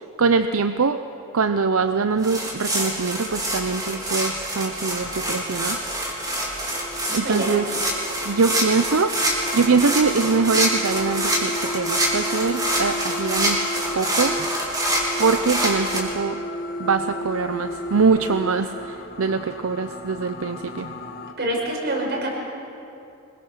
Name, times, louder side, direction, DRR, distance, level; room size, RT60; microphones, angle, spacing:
voice 1, 0.2-1.0 1.3-5.8 7.1-7.7 8.2-9.1 9.5-13.7 13.9-14.5 15.2-16.4 16.8-20.9, right 4 dB, 80° right, 9 dB, 0.7 m, -23 dB
sound 1, 2.2-16.0, right 1 dB, 20° right, 3.9 m, -26 dB
sound 2, 5.0-21.3, equal, 45° left, 1.6 m, -34 dB
voice 2, 7.1-7.5 21.4-22.3, right 1 dB, 50° right, 0 dB, 5.2 m, -26 dB
25.5 x 21.5 x 6.4 m, 2.7 s
head